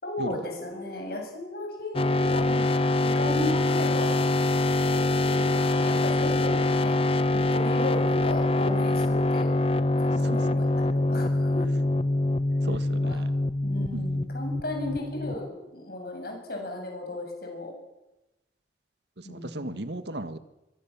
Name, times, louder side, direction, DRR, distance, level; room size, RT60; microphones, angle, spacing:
voice 1, 0.0-2.7 3.0-4.1 4.9-7.0 7.3-9.5 10.2-11.7 13.0-13.2 13.6-17.7 19.2-19.8, left 1 dB, 55° left, 2 dB, 7.4 m, -35 dB
sound 1, 1.9-15.5, left 2 dB, 30° left, 0.9 m, -24 dB
voice 2, 12.6-13.3 13.9-14.1 19.3-20.4, right 1 dB, 70° right, 11 dB, 1.6 m, -35 dB
24.0 x 23.0 x 7.4 m, 1.0 s
head